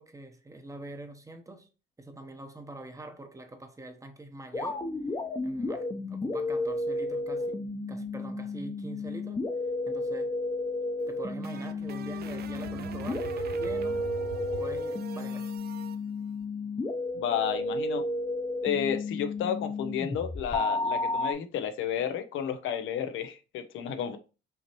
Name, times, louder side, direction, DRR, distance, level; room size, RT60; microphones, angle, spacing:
voice 1, 0.0-1.7 2.0-4.9 5.4-7.6 7.9-9.4 9.9-10.4 11.1-14.1 14.6-15.5, right 2 dB, 15° right, 0.8 m, -44 dB
sound 1, 4.5-21.3, left 2 dB, 20° left, 0.7 m, -32 dB
sound 2, 11.0-16.0, right 8 dB, 55° right, 0.4 m, -42 dB
voice 2, 17.1-18.0 18.6-24.2, left 8 dB, 80° left, 0.6 m, -31 dB
5.5 x 3.0 x 2.9 m
cardioid pair, 90°, 20 cm